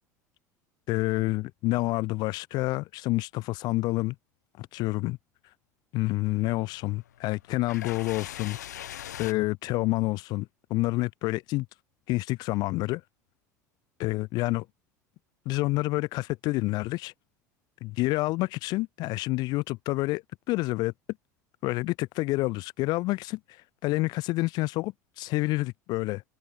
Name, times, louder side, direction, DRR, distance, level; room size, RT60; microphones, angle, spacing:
voice 1, 0.9-4.2 4.6-5.2 5.9-8.6 9.2-11.7 12.1-13.0 14.0-14.6 15.5-17.1 17.8-20.9 21.6-26.2, left 20 dB, 50° left, 0.5 m, -28 dB
sound 1, 6.2-9.3, left 11 dB, 75° left, 2.2 m, -42 dB
open air
figure-of-eight pair, 75°, 9 cm